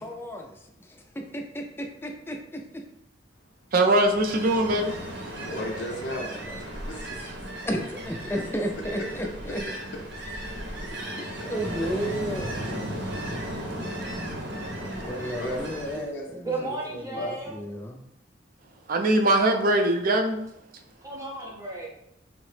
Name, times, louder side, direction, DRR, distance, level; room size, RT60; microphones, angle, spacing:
voice 1, 0.0-2.8 5.8-6.5 7.2-7.3 7.6-9.6 10.9-12.5 14.8-18.0, equal, 10° left, 3 dB, 0.4 m, -34 dB
voice 2, 3.7-5.0 12.8-12.9 18.9-20.4, right 1 dB, 50° right, 4 dB, 0.4 m, -21 dB
Ocean, 3.9-16.1, equal, 70° right, 0.8 m, -35 dB
voice 3, 5.4-6.3 6.6-7.2 8.4-8.5 9.0-9.3 9.6-9.7 11.3-11.5 15.4-16.7 17.1-17.3, left 1 dB, 70° left, 1 dB, 0.5 m, -36 dB
voice 4, 16.4-17.6 21.0-21.9, right 3 dB, 20° right, -3 dB, 0.8 m, -34 dB
3.6 x 2.0 x 3.2 m, 0.80 s
head